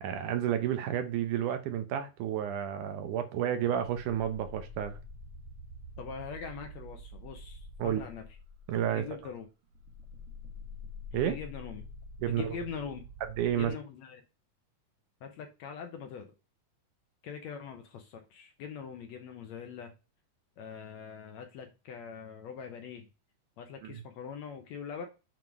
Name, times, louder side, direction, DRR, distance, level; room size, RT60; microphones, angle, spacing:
voice 1, 0.0-5.0 7.8-8.0 8.7-9.1 11.1-11.4 12.2-12.5 13.4-13.7 23.9-24.0, right 10 dB, 75° right, 2.3 m, -31 dB
sound 1, 3.8-9.3 9.7-13.7, left 1 dB, 60° right, 1.7 m, -47 dB
voice 2, 6.0-8.2 8.9-9.5 11.1-11.8 12.3-13.0 13.6-14.2 15.2-16.3 17.2-19.9 20.6-23.1 23.6-25.1, left 7 dB, 70° left, 1.8 m, -42 dB
7.8 x 3.8 x 4.6 m
omnidirectional pair, 3.8 m